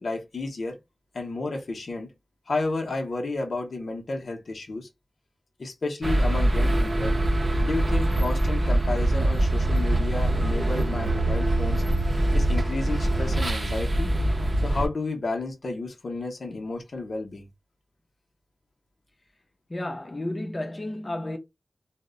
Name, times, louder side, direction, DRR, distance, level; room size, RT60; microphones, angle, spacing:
voice 1, 0.0-0.8 1.1-2.1 2.5-4.9 5.6-7.2 7.6-11.8 12.3-14.1 14.6-17.5, left 3 dB, 75° left, 0.6 m, -31 dB
sound 1, 6.0-14.9, right 1 dB, 50° right, 0.5 m, -23 dB
voice 2, 19.7-21.4, left 1 dB, 30° left, 0.5 m, -32 dB
2.1 x 2.0 x 3.6 m
wide cardioid pair, 90°, 0 cm